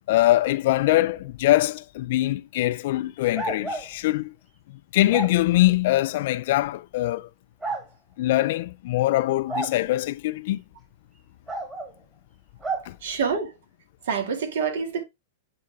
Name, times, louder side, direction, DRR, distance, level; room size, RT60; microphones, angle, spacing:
voice 1, 0.1-4.3 4.9-7.3 8.2-10.6 12.9-13.0, left 16 dB, 55° left, 0.3 m, -23 dB
sound 1, 3.4-3.9 5.1-5.3 6.6-6.7 7.6-7.8 9.5-9.8 11.5-11.9 12.6-12.9, right 3 dB, 15° right, 2.2 m, -30 dB
voice 2, 13.0-13.5 14.1-15.0, right 6 dB, 70° right, 2.2 m, -26 dB
8.5 x 4.2 x 3.5 m
supercardioid pair, 155°, 0 cm